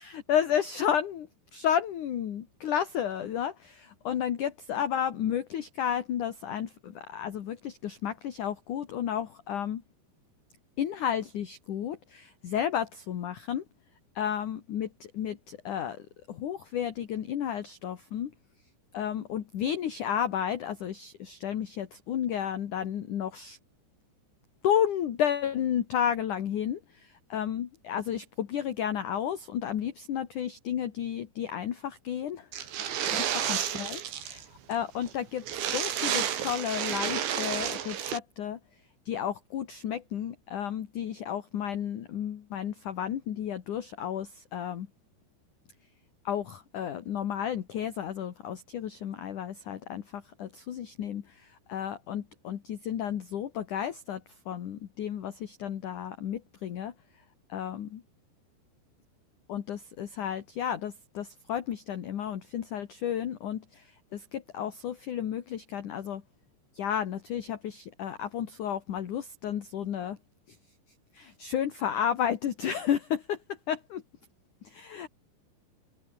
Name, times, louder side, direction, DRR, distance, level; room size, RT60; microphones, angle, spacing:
voice 1, 0.3-9.8 10.8-13.6 14.2-14.9 15.1-18.3 18.9-23.6 24.6-32.7 33.0-34.4 34.7-38.6 39.1-44.9 46.2-56.9 57.5-58.0 59.5-66.2 66.7-70.2 71.1-73.4 73.7-74.0 74.6-75.1, left 9 dB, 55° left, 2.7 m, -32 dB
sound 1, 32.5-34.5 34.7-34.8 35.1-35.2 35.4-38.2, right 9 dB, 85° right, 5.1 m, -31 dB
omnidirectional pair, 5.1 m